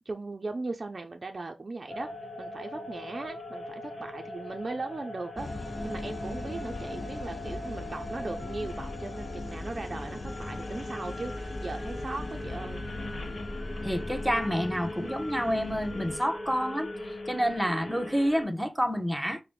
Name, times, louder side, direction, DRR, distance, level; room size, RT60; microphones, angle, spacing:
voice 1, 0.0-2.1 2.4-5.5 5.8-12.8, right 3 dB, 50° right, 0.4 m, -38 dB
sound 1, 1.9-18.4, left 1 dB, 70° left, 1.1 m, -40 dB
sound 2, 5.4-16.2, left 2 dB, 40° left, 0.4 m, -39 dB
voice 2, 13.8-16.9 17.3-19.4, equal, 5° right, 0.7 m, -28 dB
4.9 x 2.1 x 3.1 m
cardioid pair, 45°, 0 cm